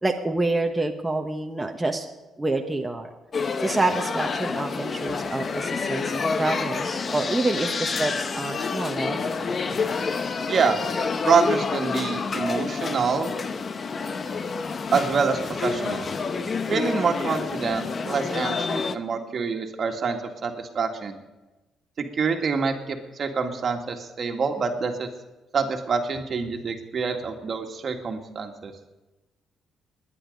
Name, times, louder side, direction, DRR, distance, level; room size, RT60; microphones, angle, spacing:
voice 1, 0.0-2.1 2.4-3.1 3.6-6.1 6.4-9.2, right 2 dB, 10° right, 2 dB, 1.1 m, -27 dB
sound 1, 3.3-19.0, left 4 dB, 40° left, 0.8 m, -28 dB
voice 2, 10.5-10.8 11.2-13.3 14.9-16.1 16.7-21.2 22.0-25.1 25.5-28.7, right 5 dB, 50° right, 4 dB, 1.8 m, -26 dB
20.5 x 10.0 x 5.3 m, 1.1 s
cardioid pair, 90°, 0 cm